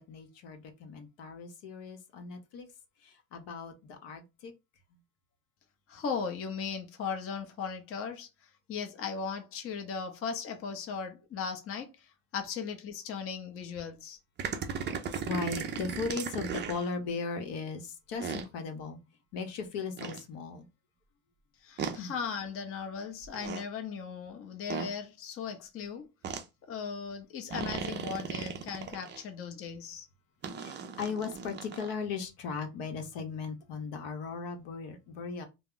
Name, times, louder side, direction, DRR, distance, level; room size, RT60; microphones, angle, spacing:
voice 1, 0.0-2.7 3.0-4.5 15.3-19.0 19.3-20.7 21.9-22.1 30.6-35.5, left 4 dB, 65° left, 0.8 m, -37 dB
voice 2, 5.9-14.2 21.6-26.1 26.7-30.1, left 6 dB, 30° left, 0.6 m, -38 dB
sound 1, 14.4-16.9 18.2-18.5 20.0-20.2 21.8-22.0 23.2-23.6 24.7-24.9 26.2-26.4 27.5-29.2 30.4-31.9, right 6 dB, 25° right, 0.4 m, -36 dB
2.3 x 2.0 x 3.6 m
supercardioid pair, 100°, 47 cm